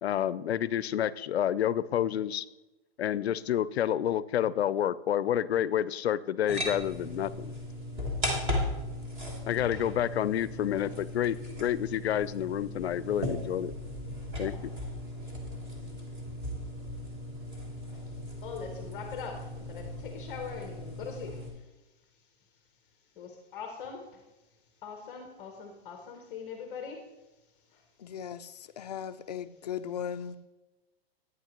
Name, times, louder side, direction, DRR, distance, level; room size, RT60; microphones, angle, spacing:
voice 1, 0.0-2.5 3.0-7.5 9.5-13.7 14.4-14.7, left 10 dB, 90° left, 0.5 m, -29 dB
sound 1, 6.5-21.5, left 1 dB, 15° right, 1.2 m, -37 dB
voice 2, 18.4-21.7 23.1-24.2 24.8-27.1 27.7-27.8, left 6 dB, 15° left, 0.8 m, -42 dB
voice 3, 28.0-30.3, left 8 dB, 40° left, 0.4 m, -37 dB
11.0 x 9.5 x 3.0 m
hypercardioid pair, 170°, 31 cm